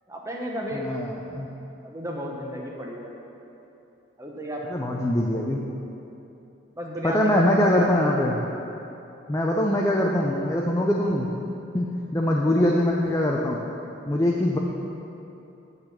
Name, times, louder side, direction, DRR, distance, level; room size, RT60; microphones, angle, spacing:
voice 1, 0.1-0.9 1.8-3.1 4.2-4.7 5.3-5.6 6.7-7.9 12.4-12.7, equal, 15° right, -1 dB, 0.8 m, -34 dB
voice 2, 0.8-1.5 4.7-5.6 7.0-8.4 9.3-11.3 11.7-13.6 14.1-14.6, left 1 dB, 15° left, -1 dB, 0.4 m, -23 dB
8.6 x 4.0 x 6.6 m, 2.9 s
head